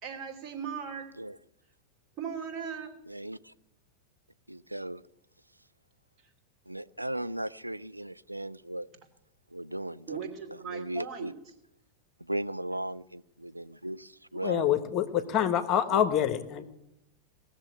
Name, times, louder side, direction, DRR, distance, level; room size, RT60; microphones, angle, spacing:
voice 1, 0.0-1.1 2.2-3.0 10.1-11.3, right 7 dB, 35° right, 3 dB, 2.8 m, -38 dB
voice 2, 3.1-3.5 4.5-5.0 6.7-8.9 9.5-10.2 10.5-11.3 12.2-14.7 15.9-16.0, right 1 dB, 85° right, 13 dB, 0.4 m, -37 dB
voice 3, 14.4-16.6, left 10 dB, 35° left, 10 dB, 1.1 m, -26 dB
18.0 x 6.9 x 9.1 m, 0.86 s
figure-of-eight pair, 90°, 0 cm